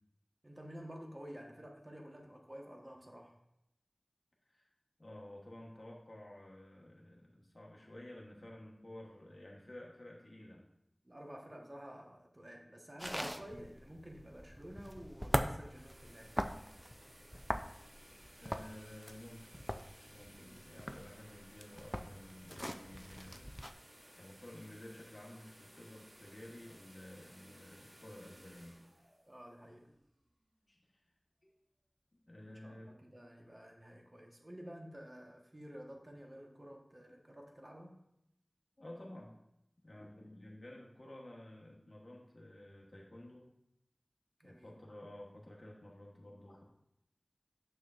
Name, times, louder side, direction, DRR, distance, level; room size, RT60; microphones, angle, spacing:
voice 1, 0.4-3.4 11.0-16.3 20.3-20.7 29.3-29.9 32.5-38.0 44.4-44.8, equal, 35° right, 1 dB, 1.1 m, -51 dB
voice 2, 5.0-10.7 18.4-19.5 20.1-23.6 24.2-29.1 30.7-31.0 32.2-32.9 37.6-37.7 38.8-39.3 39.8-43.5 44.4-46.6, left 1 dB, 55° left, -3 dB, 1.1 m, -52 dB
sound 1, 13.0-23.7, equal, ahead, 0.4 m, -41 dB
sound 2, 15.4-30.2, equal, 60° right, 1.5 m, -59 dB
6.6 x 6.5 x 2.4 m, 0.81 s
wide cardioid pair, 40°, 0 cm